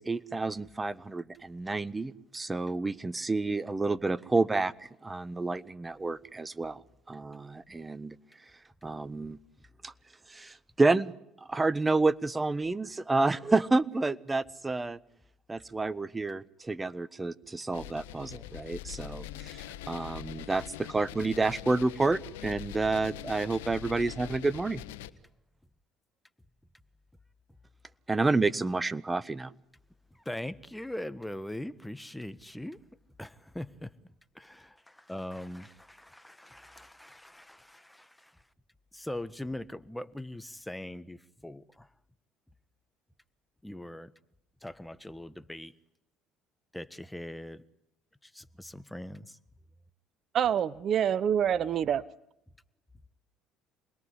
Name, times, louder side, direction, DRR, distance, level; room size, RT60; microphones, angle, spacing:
voice 1, 0.0-6.8 7.1-8.2 8.8-9.4 9.8-9.9 10.3-11.1 11.5-15.0 15.5-24.8 28.1-29.5, right 3 dB, 20° right, 1.3 m, -29 dB
sound 1, 17.7-25.1, left 13 dB, 85° left, 1.3 m, -43 dB
voice 2, 30.1-32.8 33.2-33.9 34.3-38.4 38.9-41.9 43.6-44.1 44.6-45.7 46.7-47.6 48.2-49.4, left 1 dB, 5° left, 1.5 m, -41 dB
voice 3, 50.3-52.0, right 9 dB, 50° right, 0.9 m, -26 dB
28.0 x 21.0 x 9.9 m
hypercardioid pair, 75°, 0 cm